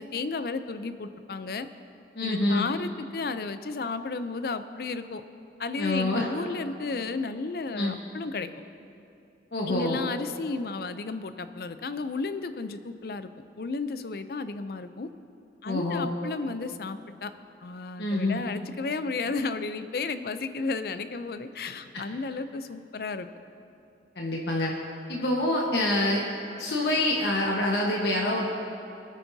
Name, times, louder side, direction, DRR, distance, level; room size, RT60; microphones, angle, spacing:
voice 1, 0.0-1.7 2.2-5.2 5.6-8.5 9.7-13.3 13.6-15.1 15.6-17.3 17.6-23.3, left 3 dB, 55° left, 11 dB, 0.5 m, -33 dB
voice 2, 2.1-2.7 5.8-6.3 7.7-8.0 9.5-10.0 15.6-16.1 18.0-18.4 21.9-22.0 24.1-24.7 25.1-26.3 26.6-28.5, left 1 dB, 75° left, -2 dB, 1.3 m, -26 dB
25.5 x 9.1 x 2.7 m, 2.7 s
head